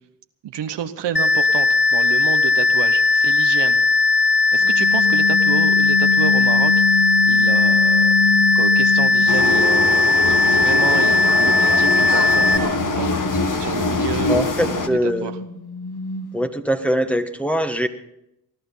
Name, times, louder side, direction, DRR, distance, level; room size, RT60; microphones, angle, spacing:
voice 1, 0.4-3.8 4.5-6.7 7.3-13.1 13.6-15.4, right 10 dB, 75° right, 9 dB, 1.1 m, -30 dB
sound 1, 1.2-12.6, left 3 dB, 25° left, 1.2 m, -17 dB
sound 2, 4.6-9.9 10.2-16.5, left 5 dB, 65° left, 1.7 m, -26 dB
sound 3, 9.3-14.9, left 3 dB, 45° left, 1.8 m, -23 dB
voice 2, 14.3-15.3 16.3-17.9, equal, 5° left, 8 dB, 1.6 m, -22 dB
21.0 x 11.5 x 5.6 m, 0.83 s
supercardioid pair, 45°, 42 cm